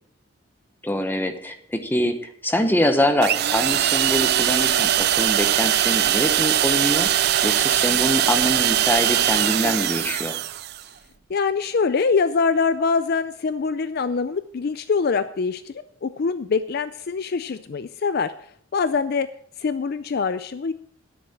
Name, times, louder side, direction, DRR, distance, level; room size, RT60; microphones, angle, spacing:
voice 1, 0.8-10.4, left 1 dB, 10° left, 6 dB, 1.1 m, -24 dB
sound 1, 3.2-10.8, right 11 dB, 50° right, 0.4 m, -21 dB
voice 2, 11.3-18.3 18.7-19.3 19.6-20.7, left 5 dB, 50° left, 13 dB, 0.4 m, -24 dB
12.0 x 10.0 x 4.4 m, 0.62 s
head